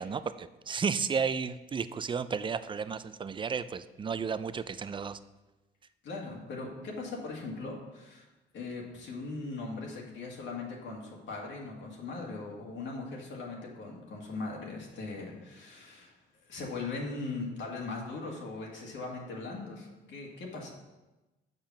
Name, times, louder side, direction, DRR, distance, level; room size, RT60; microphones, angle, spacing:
voice 1, 0.0-5.2, right 6 dB, 25° right, 14 dB, 0.4 m, -33 dB
voice 2, 6.0-8.2 8.5-16.1 16.5-20.7, left 3 dB, 70° left, -2 dB, 1.9 m, -39 dB
6.7 x 5.6 x 5.9 m, 1.1 s
cardioid pair, 90°, 20 cm